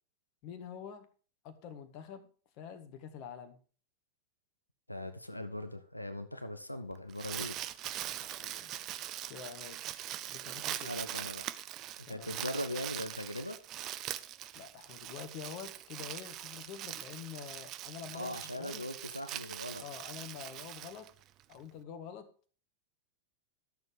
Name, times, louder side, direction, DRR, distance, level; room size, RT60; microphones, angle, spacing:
voice 1, 0.4-1.1 1.4-2.3 2.6-3.6 8.2-8.7 9.3-9.9 10.3-11.3 12.1-12.4 14.5-18.9 19.8-21.1 21.5-22.3, left 8 dB, 40° left, 10 dB, 1.7 m, -47 dB
voice 2, 4.9-7.5 10.8-11.5 12.1-13.6 18.1-19.8, left 1 dB, 85° left, 9 dB, 1.1 m, -40 dB
Crumpling crinkling, 6.9-21.5, right 13 dB, 35° right, 0.7 m, -42 dB
13.0 x 6.9 x 4.9 m, 0.39 s
figure-of-eight pair, 90°, 0 cm